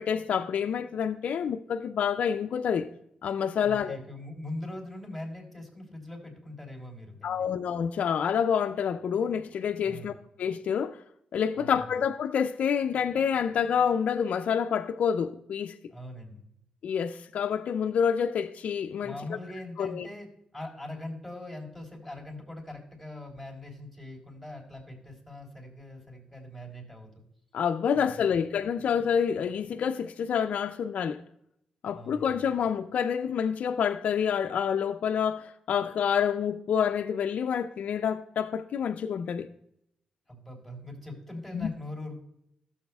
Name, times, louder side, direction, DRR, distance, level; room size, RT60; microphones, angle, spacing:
voice 1, 0.0-2.9 3.2-4.0 7.2-11.0 11.3-15.8 16.8-19.2 19.8-20.1 27.5-31.2 31.8-39.5 41.5-41.7, left 7 dB, 70° left, 0.4 m, -28 dB
voice 2, 3.6-7.3 9.8-10.1 11.6-11.8 15.9-16.5 19.0-20.3 20.5-27.2 27.9-28.3 31.9-32.3 40.3-42.2, left 1 dB, 5° right, 3.7 m, -41 dB
13.5 x 7.2 x 2.3 m
cardioid pair, 60°, 2 cm